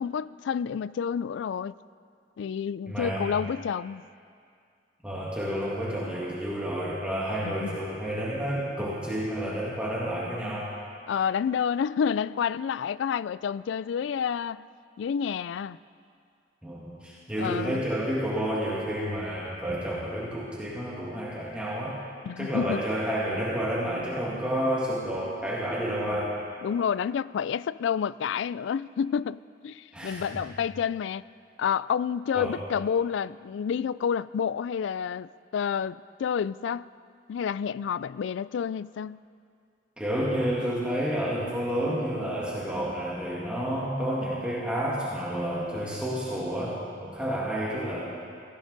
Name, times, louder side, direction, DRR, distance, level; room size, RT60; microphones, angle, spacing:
voice 1, 0.0-1.7 2.4-4.0 7.4-7.8 11.1-14.7 15.0-15.8 17.4-17.8 22.3-22.8 26.6-31.2 31.6-36.9 37.3-39.2, left 7 dB, 75° left, 19 dB, 0.3 m, -29 dB
voice 2, 2.9-3.3 5.0-10.7 16.6-22.0 22.4-26.3 29.9-30.4 32.3-32.6 40.0-48.0, equal, 5° right, -7 dB, 2.0 m, -30 dB
17.5 x 16.0 x 4.0 m, 2.3 s
head